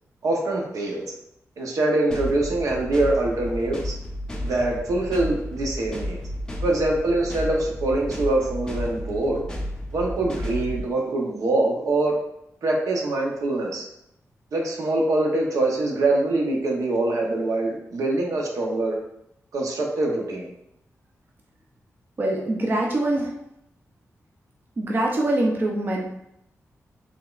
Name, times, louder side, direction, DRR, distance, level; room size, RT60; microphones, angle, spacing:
voice 1, 0.2-1.1 1.6-3.9 4.4-6.2 6.6-9.4 9.9-12.2 12.6-13.9 14.5-19.0 19.5-20.5, right 2 dB, 80° right, 0 dB, 0.9 m, -24 dB
sound 1, 2.1-10.9, equal, 15° left, 0.6 m, -32 dB
voice 2, 22.2-23.3 24.8-26.1, right 1 dB, 35° right, -1 dB, 0.6 m, -23 dB
5.0 x 3.6 x 2.4 m, 0.80 s
wide cardioid pair, 170°, 6 cm